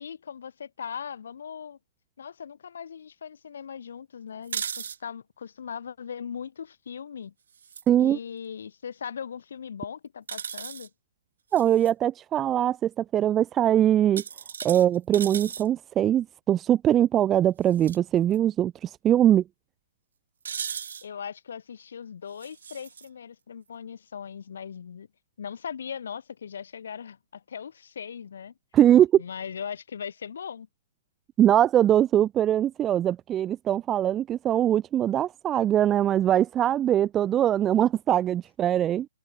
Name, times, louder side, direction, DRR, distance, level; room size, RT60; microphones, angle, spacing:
voice 1, 0.0-1.8 2.2-7.3 8.0-10.9 21.0-25.1 25.4-28.5 29.2-30.7, left 7 dB, 65° left, 2.4 m, -39 dB
sound 1, 4.4-5.0 7.5-7.9 10.3-10.9 11.5-11.9 14.2-15.7 17.7-18.0 18.3-18.4 20.5-21.1 22.4-23.1, right 7 dB, 65° right, 3.2 m, -36 dB
voice 2, 7.9-8.2 11.5-14.2 14.6-19.4 28.7-29.2 31.4-39.1, right 11 dB, 15° right, 0.3 m, -22 dB
hypercardioid pair, 150°, 0 cm